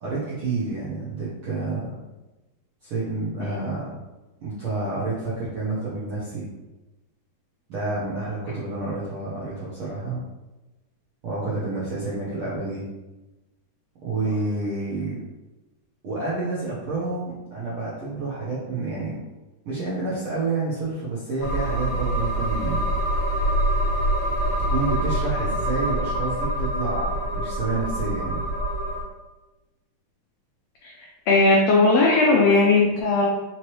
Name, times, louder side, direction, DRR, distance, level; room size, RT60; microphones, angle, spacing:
voice 1, 0.0-2.0 2.8-4.0 4.4-6.5 7.7-10.2 11.2-12.9 14.0-15.2 16.0-19.2 19.6-22.8 24.7-28.4, right 3 dB, 75° right, -9 dB, 1.2 m, -29 dB
sound 1, 21.4-29.0, right 1 dB, 65° left, 1.2 m, -25 dB
voice 2, 31.3-33.2, left 3 dB, 85° left, -3 dB, 1.4 m, -18 dB
5.0 x 3.1 x 3.0 m, 1.1 s
omnidirectional pair, 3.7 m